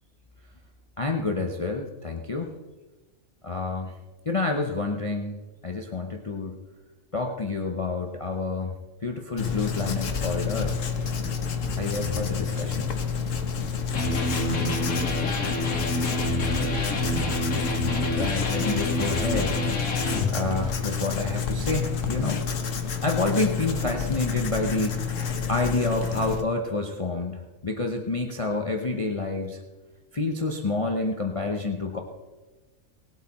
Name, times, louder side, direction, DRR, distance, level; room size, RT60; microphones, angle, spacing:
voice 1, 1.0-2.5 3.4-3.9 4.2-5.3 5.6-6.6 7.1-8.7 9.0-10.7 11.8-12.9 18.2-19.6 19.8-20.0 20.3-22.4 23.0-25.0 25.5-29.6 30.1-32.0, left 3 dB, 30° left, 3 dB, 0.8 m, -28 dB
Writing, 9.4-26.4, left 6 dB, 65° left, 1.4 m, -29 dB
Electric guitar, 13.9-20.3, left 1 dB, 85° left, 2.0 m, -28 dB
voice 2, 14.0-16.5, right 2 dB, 30° right, 1 dB, 2.0 m, -45 dB
19.0 x 8.2 x 4.3 m, 1.2 s
omnidirectional pair, 1.4 m